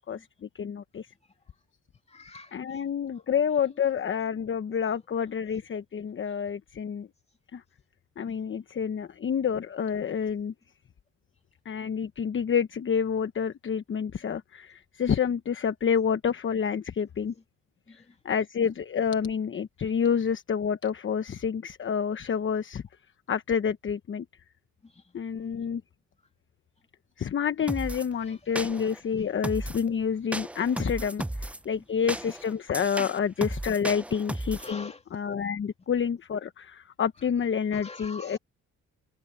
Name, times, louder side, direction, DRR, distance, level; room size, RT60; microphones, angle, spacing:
voice 1, 0.0-1.1 2.5-7.1 7.5-7.6 8.2-10.5 11.6-17.3 18.2-22.8 23.3-24.2 25.1-25.8 27.2-38.4, left 7 dB, 40° left, 1.0 m, -28 dB
voice 2, 2.1-2.8 3.6-3.9 5.1-5.3 6.3-6.4 17.3-17.4 17.9-18.2 24.8-25.5 28.1-28.8 29.2-29.3 31.7-32.0 33.9-34.1 34.6-35.0 37.2-37.3 37.7-38.4, left 3 dB, 20° left, 2.7 m, -48 dB
sound 1, 27.7-28.1 28.6-29.0 29.4-29.9 30.3-31.6 32.1-34.7, right 1 dB, 5° right, 0.5 m, -34 dB
cardioid pair, 90°, 30 cm